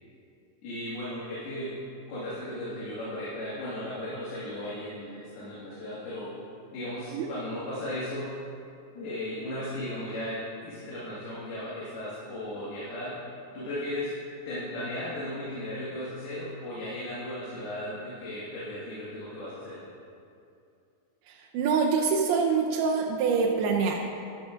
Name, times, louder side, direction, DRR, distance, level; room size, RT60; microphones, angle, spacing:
voice 1, 0.6-1.7 2.1-6.3 6.7-8.3 8.9-13.2 13.5-14.1 14.5-19.8, left 1 dB, 75° left, -10 dB, 3.7 m, -36 dB
voice 2, 21.5-23.9, right 5 dB, 90° right, -1 dB, 2.7 m, -25 dB
13.5 x 11.5 x 2.5 m, 2.5 s
omnidirectional pair, 4.5 m